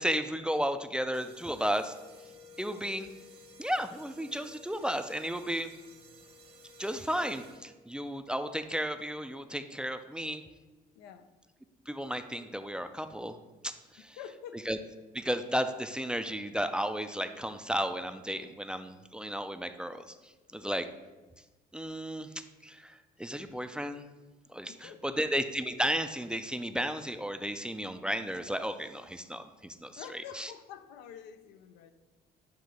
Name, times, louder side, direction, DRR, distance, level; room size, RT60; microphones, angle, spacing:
voice 1, 0.0-1.9 2.6-3.1 3.6-5.7 6.8-10.4 11.9-13.3 13.6-14.2 14.5-14.8 15.1-20.9 21.7-24.1 24.5-30.5, equal, 5° right, 8 dB, 0.3 m, -34 dB
sound 1, 1.1-7.9, left 2 dB, 35° right, 0.8 m, -54 dB
voice 2, 10.9-11.3 14.0-14.6 24.7-25.2 30.0-31.9, left 8 dB, 90° left, 9 dB, 0.5 m, -47 dB
7.9 x 2.7 x 5.1 m, 1.2 s
cardioid pair, 110°, 17 cm